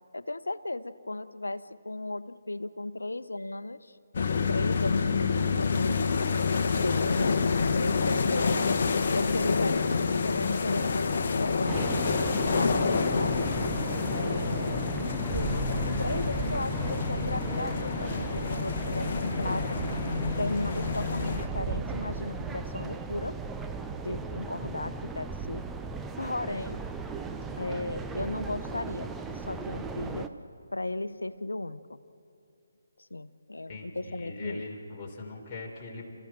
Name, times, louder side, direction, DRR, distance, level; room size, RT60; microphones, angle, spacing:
voice 1, 0.1-3.9 4.5-6.0 6.8-8.7 9.1-13.3 14.1-14.8 15.3-19.8 20.3-23.3 24.0-25.6 26.2-26.8 27.6-30.3 30.7-32.0 33.1-34.6, left 2 dB, 85° left, 14 dB, 0.8 m, -35 dB
sound 1, 4.1-21.5, left 5 dB, 50° left, 1.3 m, -28 dB
sound 2, 11.7-30.3, right 4 dB, 5° right, 0.7 m, -36 dB
voice 2, 33.7-36.2, left 3 dB, 25° left, -1 dB, 3.6 m, -41 dB
30.0 x 15.0 x 7.6 m, 2.7 s
figure-of-eight pair, 150°, 0 cm